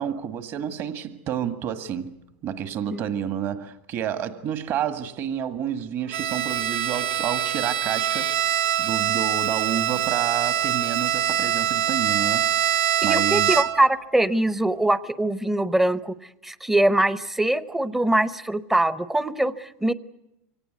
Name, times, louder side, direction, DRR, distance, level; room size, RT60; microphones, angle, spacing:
voice 1, 0.0-8.3 8.8-13.6, right 9 dB, 45° right, 1.8 m, -30 dB
Bowed string instrument, 6.1-13.9, right 10 dB, 80° right, 0.9 m, -24 dB
voice 2, 13.0-16.2 16.4-19.9, right 1 dB, 5° right, 0.8 m, -22 dB
25.0 x 18.0 x 9.4 m
supercardioid pair, 130°, 6 cm